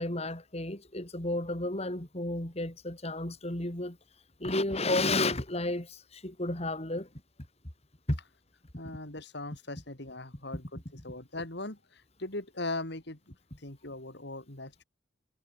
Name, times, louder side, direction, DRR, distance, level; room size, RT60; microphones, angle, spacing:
voice 1, 0.0-4.0 4.4-7.1 8.1-8.2, left 2 dB, 30° left, 3.3 m, -32 dB
voice 2, 8.8-14.8, left 2 dB, 55° left, 3.3 m, -40 dB
head